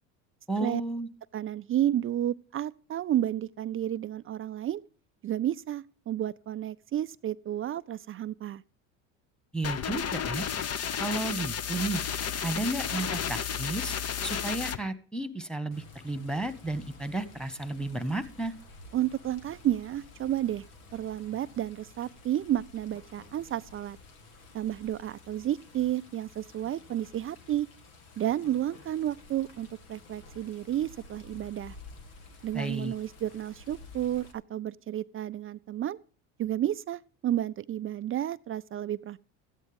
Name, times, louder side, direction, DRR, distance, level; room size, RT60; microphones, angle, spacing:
voice 1, 0.5-1.1 9.5-10.4 11.0-12.0 12.4-14.0 14.2-18.5 32.5-32.9, right 2 dB, ahead, 1.9 m, -33 dB
voice 2, 1.3-4.8 5.2-8.6 18.9-20.6 20.9-24.0 24.5-27.7 28.2-31.7 32.4-36.0 36.4-39.2, right 12 dB, 35° right, 0.5 m, -31 dB
sound 1, 9.6-14.8, left 8 dB, 40° left, 1.1 m, -32 dB
Water, 15.7-34.3, left 3 dB, 75° left, 2.8 m, -52 dB
14.5 x 9.2 x 5.3 m
hypercardioid pair, 80°, 40 cm